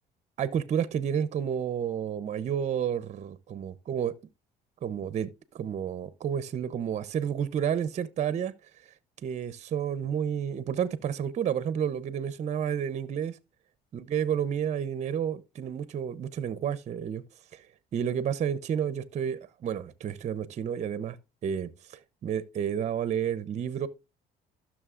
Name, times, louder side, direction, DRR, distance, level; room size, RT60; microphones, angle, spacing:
voice 1, 0.4-4.1 4.8-8.5 9.2-13.4 13.9-17.2 17.5-17.6 17.9-21.2 21.4-21.7 22.2-23.9, right 8 dB, 45° right, 0.6 m, -30 dB
14.5 x 6.2 x 2.4 m
cardioid pair, 110°, 17 cm